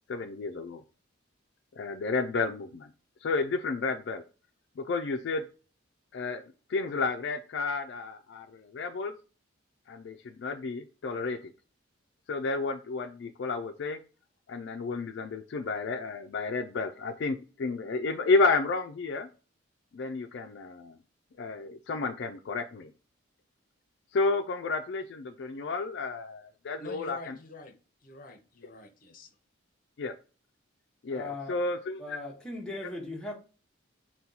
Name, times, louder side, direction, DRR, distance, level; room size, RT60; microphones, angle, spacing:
voice 1, 0.1-0.8 1.8-2.9 3.2-4.2 4.8-5.4 6.1-9.1 9.9-11.5 12.3-14.0 14.5-19.3 19.9-21.0 21.4-22.9 24.1-27.3 30.0-30.1 31.0-32.2, left 3 dB, 60° left, 0.3 m, -31 dB
voice 2, 26.8-27.7 28.0-29.3, left 2 dB, 45° left, 0.7 m, -46 dB
voice 3, 31.1-31.6 32.0-33.3, left 2 dB, 5° left, 0.7 m, -38 dB
4.2 x 2.2 x 3.8 m
head